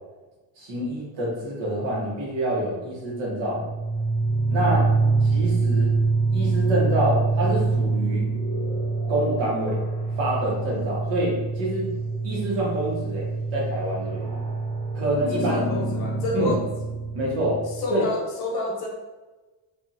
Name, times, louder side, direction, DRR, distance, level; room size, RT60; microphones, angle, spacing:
voice 1, 0.6-3.7 4.5-4.9 5.2-5.9 6.3-8.3 9.1-9.8 10.2-11.9 12.2-14.3 14.9-15.6 16.3-16.5 17.1-17.6 17.9-18.0, right 1 dB, 75° right, -4 dB, 1.2 m, -26 dB
sound 1, 3.4-18.0, right 3 dB, 15° left, 0.5 m, -25 dB
voice 2, 15.3-16.7 17.6-18.9, left 2 dB, 55° left, -1 dB, 0.8 m, -29 dB
2.7 x 2.7 x 2.5 m, 1.2 s
cardioid pair, 160°, 46 cm